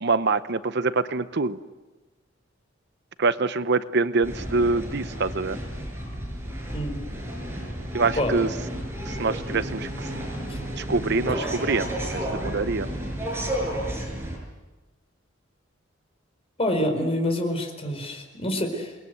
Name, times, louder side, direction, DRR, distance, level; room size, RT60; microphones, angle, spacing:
voice 1, 0.0-1.6 3.2-5.6 7.9-8.5 9.0-10.1 10.8-12.9, right 3 dB, 60° right, 13 dB, 0.8 m, -25 dB
sound 1, 4.2-14.4, equal, 15° right, 6.5 m, -32 dB
voice 2, 6.7-7.0 8.2-8.3 10.5-10.6 11.4-11.5 16.6-18.9, left 1 dB, 30° left, 5 dB, 4.6 m, -27 dB
28.0 x 21.0 x 8.1 m, 1.2 s
head